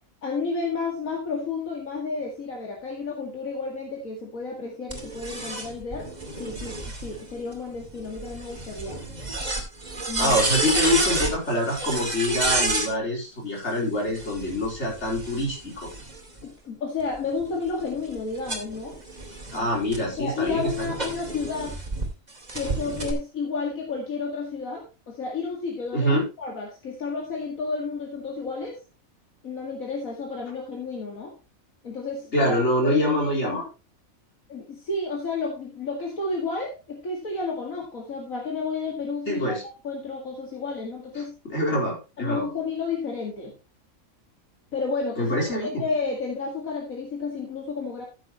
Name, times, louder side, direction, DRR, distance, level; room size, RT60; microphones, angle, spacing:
voice 1, 0.2-9.0 10.1-10.4 16.4-19.0 19.5-19.7 20.0-21.8 22.5-28.8 29.4-31.3 31.8-32.6 32.8-33.7 34.5-39.6 39.8-41.4 42.2-43.5 44.7-48.1, left 4 dB, 75° left, 0 dB, 2.5 m, -31 dB
sound 1, 4.9-12.9 14.0-16.4 17.0-22.1 22.5-23.1, right 2 dB, 30° right, 2.6 m, -30 dB
voice 2, 10.2-15.9 19.5-21.0 25.9-26.2 32.3-33.6 39.3-39.6 41.4-42.5 45.2-45.8, equal, 50° left, -3 dB, 4.9 m, -25 dB
14.0 x 7.9 x 3.1 m, 0.30 s
omnidirectional pair, 1.5 m